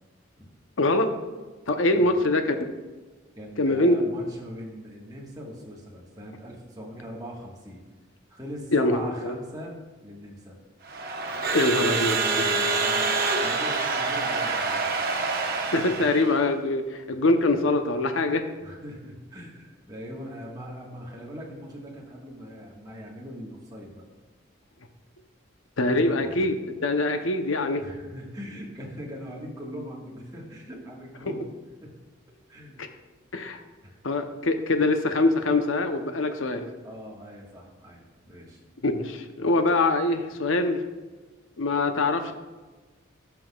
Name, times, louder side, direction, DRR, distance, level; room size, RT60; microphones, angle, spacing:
voice 1, 0.8-1.1 1.7-2.5 3.6-3.9 8.7-9.3 11.5-12.4 15.7-18.4 25.8-26.5 26.8-27.8 33.3-33.6 34.0-36.7 38.8-40.8 41.6-42.3, left 2 dB, 80° left, 7 dB, 0.7 m, -23 dB
voice 2, 3.4-7.8 8.3-9.8 10.0-10.6 11.8-15.1 15.6-16.2 18.6-24.0 25.9-26.5 27.8-31.5 31.8-31.9 32.3-32.8 33.8-34.0 36.8-38.6, equal, 20° right, -3 dB, 1.4 m, -41 dB
Crowd / Alarm, 10.9-16.4, right 3 dB, 50° right, 1.0 m, -26 dB
16.0 x 5.8 x 2.3 m, 1.3 s
head